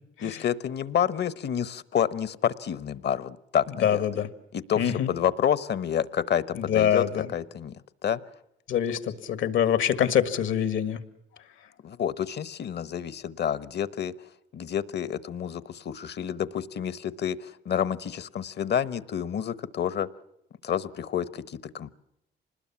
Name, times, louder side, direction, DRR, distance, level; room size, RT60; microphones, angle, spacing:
voice 1, 0.2-4.0 4.5-7.0 7.3-8.2 11.8-14.1 14.5-20.1 20.6-21.9, left 9 dB, 60° left, 18 dB, 1.1 m, -29 dB
voice 2, 3.8-4.3 4.8-5.1 6.5-7.3 8.7-11.0, left 9 dB, 75° left, 14 dB, 1.7 m, -25 dB
26.5 x 20.5 x 7.2 m, 0.81 s
cardioid pair, 90°, 20 cm